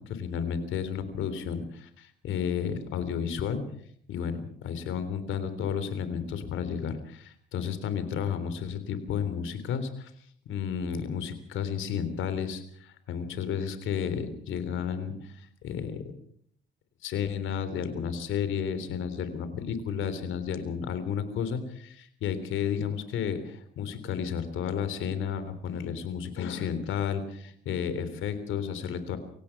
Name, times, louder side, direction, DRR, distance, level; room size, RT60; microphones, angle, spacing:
voice 1, 0.0-3.6 4.1-10.1 10.5-16.0 17.0-29.2, left 7 dB, 85° left, 11 dB, 3.5 m, -32 dB
24.5 x 17.5 x 6.0 m, 0.63 s
cardioid pair, 90°, 20 cm